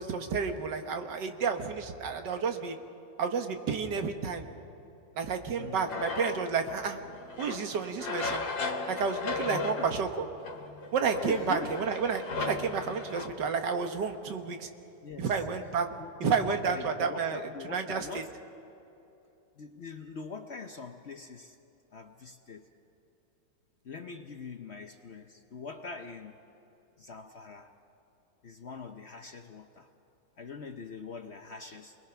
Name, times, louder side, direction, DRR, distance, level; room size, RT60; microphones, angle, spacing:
voice 1, 0.0-2.8 3.2-4.5 5.2-7.0 7.4-8.5 8.9-10.3 10.9-14.7 15.2-15.9 16.2-17.4 17.7-18.2, right 5 dB, 70° right, 6 dB, 1.8 m, -31 dB
voice 2, 5.6-6.0 9.5-9.9 11.2-11.9 15.0-15.3 16.0-18.3 19.6-21.6 21.9-22.7 23.8-26.3 27.0-27.7 28.4-29.9 30.4-32.0, left 4 dB, 55° left, 6 dB, 0.7 m, -43 dB
sound 1, 5.9-13.3, left 4 dB, 85° left, 2.1 m, -36 dB
27.5 x 20.5 x 5.8 m, 2.8 s
omnidirectional pair, 2.0 m